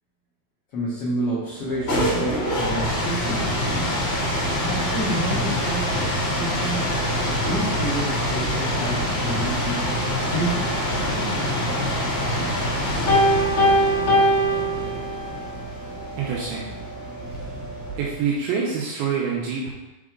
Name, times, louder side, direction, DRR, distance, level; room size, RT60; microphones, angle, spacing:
voice 1, 0.7-3.6 4.6-6.9 7.3-9.9 10.3-11.9, right 1 dB, 85° left, -8 dB, 1.3 m, -30 dB
sound 1, 1.6-18.3, equal, 40° left, 2.6 m, -26 dB
Piano, 13.1-15.5, equal, 65° left, 1.3 m, -20 dB
voice 2, 16.2-16.7 18.0-19.7, right 6 dB, 80° right, -4 dB, 2.6 m, -26 dB
6.2 x 4.6 x 3.7 m, 1.0 s
omnidirectional pair, 4.5 m